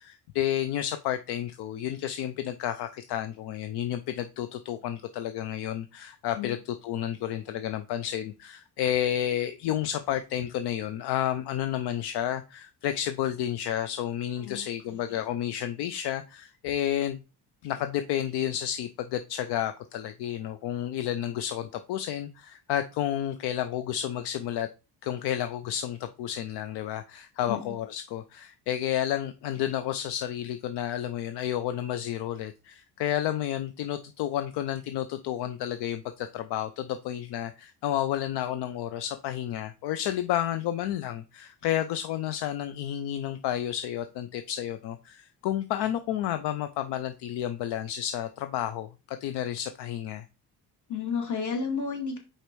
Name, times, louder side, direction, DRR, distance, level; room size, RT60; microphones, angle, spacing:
voice 1, 0.0-17.2 17.6-24.7 25.0-50.3, left 11 dB, 75° left, 9 dB, 0.6 m, -31 dB
voice 2, 14.4-15.0 27.5-27.7 50.9-52.2, left 5 dB, 45° left, 3 dB, 2.3 m, -32 dB
5.0 x 4.3 x 4.6 m, 0.30 s
cardioid pair, 100°, 40 cm